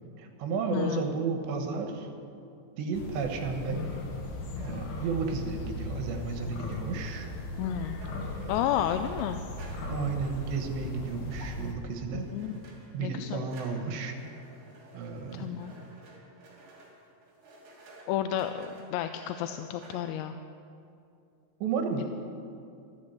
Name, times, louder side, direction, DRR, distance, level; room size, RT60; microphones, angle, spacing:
voice 1, 0.2-2.1 2.8-3.9 4.6-7.3 8.4-8.8 9.9-12.3 12.9-14.2 14.9-15.5 21.6-22.1, right 5 dB, 85° right, 4 dB, 3.5 m, -33 dB
voice 2, 0.7-1.1 7.6-8.0 8.5-9.4 12.1-12.5 13.0-13.4 15.3-15.7 18.1-20.4, left 10 dB, 85° left, 8 dB, 2.7 m, -31 dB
sound 1, 2.9-11.7, left 2 dB, 65° left, 3.4 m, -38 dB
sound 2, 8.0-13.2 13.5-18.1 18.4-18.9 19.2-20.0, right 2 dB, 50° right, 3.9 m, -54 dB
13.5 x 13.0 x 7.9 m, 2.5 s
omnidirectional pair, 5.0 m